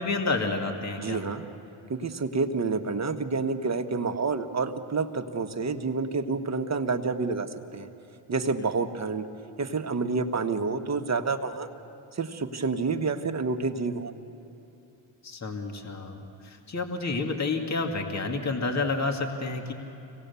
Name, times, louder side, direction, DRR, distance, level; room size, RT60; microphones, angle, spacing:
voice 1, 0.0-1.2 15.2-19.7, left 3 dB, 30° left, 4 dB, 2.2 m, -30 dB
voice 2, 1.0-1.5 1.9-7.9 8.3-9.2 9.6-11.7 12.1-14.1, right 4 dB, 30° right, 6 dB, 1.4 m, -29 dB
25.5 x 18.0 x 7.0 m, 2.9 s
supercardioid pair, 65°, 50 cm